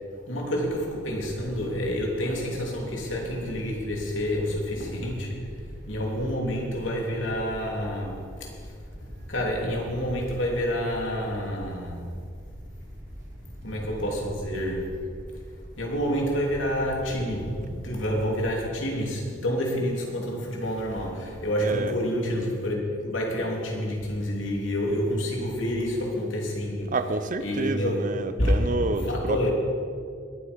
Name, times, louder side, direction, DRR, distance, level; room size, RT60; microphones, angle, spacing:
voice 1, 0.3-5.4 5.9-8.5 9.3-12.1 13.6-14.9 15.8-27.0 27.4-28.1 28.4-28.5 28.9-29.5, equal, 80° left, 3.1 m, -28 dB
sound 1, 0.6-18.6, equal, 20° right, 2.5 m, -43 dB
voice 2, 21.6-22.0 26.9-29.5, right 3 dB, 45° right, 0.7 m, -29 dB
21.0 x 8.3 x 5.3 m
head